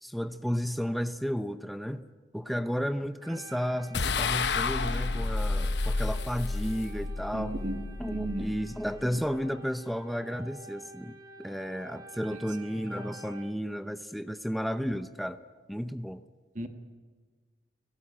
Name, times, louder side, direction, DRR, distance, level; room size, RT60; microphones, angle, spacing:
voice 1, 0.0-2.1 2.3-7.6 8.0-15.4 15.7-16.2, equal, ahead, 9 dB, 0.7 m, -33 dB
sound 1, 3.2-13.4, right 2 dB, 25° right, 5.4 m, -50 dB
sound 2, 3.9-9.3, left 3 dB, 75° left, 0.9 m, -31 dB
voice 2, 7.3-7.8 8.1-8.4 16.5-16.7, right 2 dB, 45° right, 6 dB, 1.8 m, -33 dB
30.0 x 17.5 x 8.9 m, 1.5 s
head